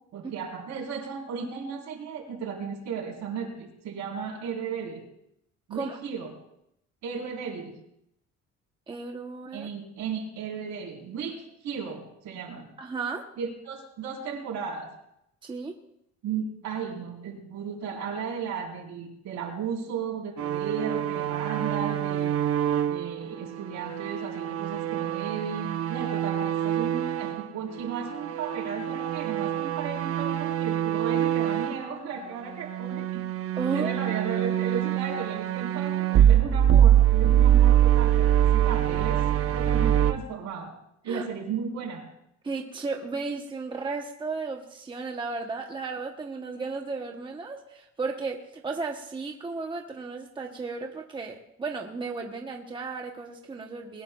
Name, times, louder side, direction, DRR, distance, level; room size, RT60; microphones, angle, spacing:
voice 1, 0.1-5.0 5.7-6.3 7.0-7.7 9.5-12.7 13.4-14.9 16.2-22.3 22.8-33.2 33.7-39.2 39.5-40.7 41.0-42.0, right 6 dB, 70° right, 0 dB, 4.1 m, -35 dB
voice 2, 8.9-9.7 12.8-13.3 15.4-15.7 33.6-33.9 41.0-41.2 42.4-54.0, right 4 dB, 15° right, 2 dB, 0.9 m, -34 dB
sound 1, 20.4-27.5 27.8-31.9 32.5-40.1, right 11 dB, 50° right, 0.8 m, -24 dB
21.0 x 18.5 x 2.3 m, 0.79 s
cardioid pair, 170°, 29 cm